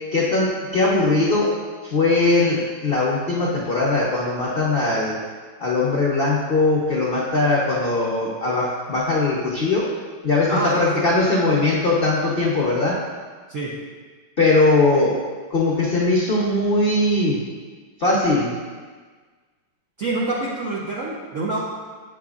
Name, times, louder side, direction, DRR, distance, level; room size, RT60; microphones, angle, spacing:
voice 1, 0.1-1.5 1.8-5.2 5.6-9.9 10.2-12.9 14.4-15.2 15.5-17.4 18.0-18.5, left 2 dB, 80° left, -5 dB, 0.5 m, -20 dB
voice 2, 10.5-10.8 13.5-13.8 20.0-21.6, right 2 dB, 75° right, -4 dB, 0.7 m, -26 dB
8.3 x 5.9 x 2.4 m, 1.5 s
omnidirectional pair, 2.3 m